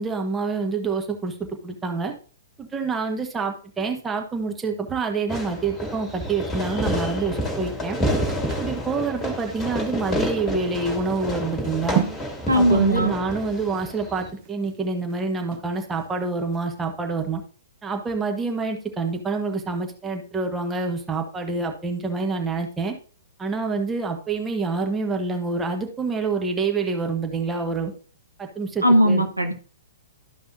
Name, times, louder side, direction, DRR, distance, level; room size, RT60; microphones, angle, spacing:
voice 1, 0.0-2.1 2.6-8.0 8.6-12.0 12.5-17.4 17.8-22.9 23.4-27.9 28.4-29.2, right 4 dB, 10° right, 3 dB, 1.0 m, -27 dB
Fireworks, 5.3-14.3, equal, 10° left, 2.1 m, -29 dB
sound 1, 7.6-16.1 16.5-16.6, right 11 dB, 30° right, 0.6 m, -34 dB
voice 2, 12.5-13.1 28.8-29.5, equal, 85° right, 6 dB, 1.1 m, -18 dB
12.5 x 5.4 x 2.6 m, 0.39 s
figure-of-eight pair, 115°, 0 cm